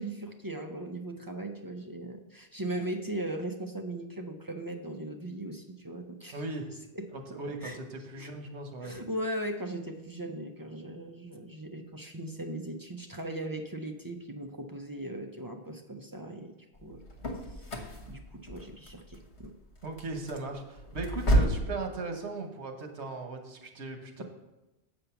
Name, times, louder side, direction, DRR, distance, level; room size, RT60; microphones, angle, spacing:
voice 1, 0.0-6.4 6.9-7.1 7.6-7.8 8.2-8.3 8.8-16.6 16.8-17.0 17.5-19.5, right 1 dB, 30° right, 3 dB, 0.4 m, -38 dB
voice 2, 6.3-6.7 7.3-9.0 19.8-24.2, right 3 dB, 85° right, 4 dB, 1.3 m, -38 dB
sound 1, 16.8-21.7, right 1 dB, 80° left, 1.5 m, -31 dB
8.0 x 5.2 x 5.7 m, 1.0 s
omnidirectional pair, 1.1 m